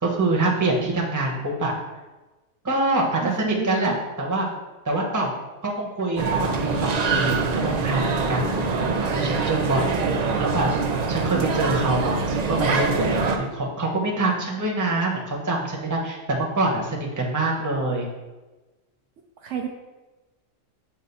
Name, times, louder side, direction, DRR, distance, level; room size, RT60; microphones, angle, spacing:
voice 1, 0.0-1.7 2.6-4.5 4.8-5.3 5.6-10.7 11.1-18.1, right 2 dB, 15° right, -2 dB, 0.9 m, -25 dB
voice 2, 3.2-4.0 10.1-10.6 14.2-14.4 19.4-19.7, right 10 dB, 70° right, 3 dB, 0.8 m, -31 dB
sound 1, 6.2-13.4, right 4 dB, 90° right, 0.3 m, -24 dB
7.2 x 2.6 x 5.4 m, 1.1 s
omnidirectional pair, 1.4 m